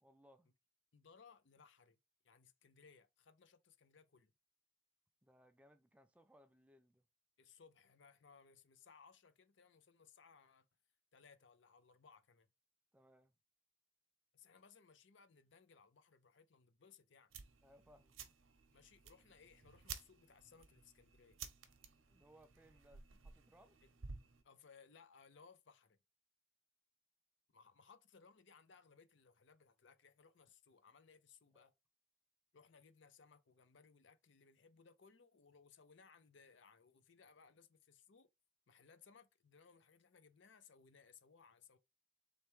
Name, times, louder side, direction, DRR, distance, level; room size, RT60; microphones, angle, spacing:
voice 1, 0.0-0.5 5.2-7.1 12.9-13.4 17.6-18.4 22.1-23.8 31.5-31.7, equal, 5° right, 0.3 m, -67 dB
voice 2, 0.9-2.0 2.2-4.3 7.4-10.7 11.1-12.5 14.3-17.4 18.7-21.4 23.8-23.9 24.4-26.0 27.5-31.7 32.5-38.3 38.7-41.8, left 5 dB, 60° left, 0.6 m, -65 dB
sound 1, 17.3-24.4, right 6 dB, 75° right, 0.8 m, -55 dB
4.2 x 3.4 x 3.1 m
head